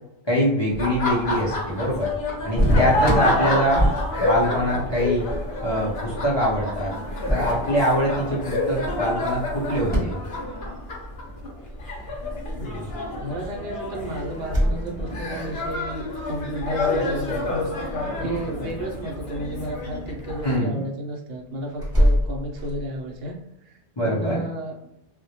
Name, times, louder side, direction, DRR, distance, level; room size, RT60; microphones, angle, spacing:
voice 1, 0.3-2.1 2.4-3.9 4.2-5.3 5.6-6.9 7.3-10.2 20.4-20.8 24.0-24.4, equal, 35° left, -8 dB, 0.5 m, -23 dB
Laughter, 0.7-20.6, left 2 dB, 75° left, 0.9 m, -28 dB
sound 1, 2.5-10.0, equal, 10° left, 0.8 m, -28 dB
voice 2, 13.2-23.4 23.7-24.8, right 1 dB, 75° right, 1 dB, 0.8 m, -33 dB
sound 2, 14.3-15.8 17.0-17.5 17.8-18.3 21.8-23.2, equal, 25° right, 0.9 m, -24 dB
2.1 x 2.1 x 2.8 m, 0.82 s
omnidirectional pair, 1.1 m